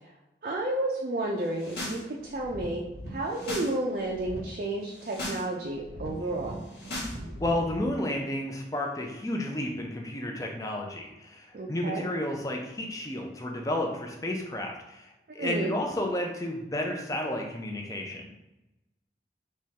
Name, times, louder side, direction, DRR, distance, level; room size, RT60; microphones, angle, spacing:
voice 1, 0.4-6.6 11.5-12.1 15.4-15.7, right 2 dB, 50° right, -1 dB, 0.4 m, -31 dB
sound 1, 1.4-2.0 2.3-3.7 4.0-4.4 4.8-5.4 5.7-7.8, left 1 dB, 75° left, 1.4 m, -38 dB
voice 2, 7.4-18.3, left 1 dB, 20° left, 1 dB, 0.5 m, -32 dB
3.6 x 3.1 x 2.8 m, 0.98 s
head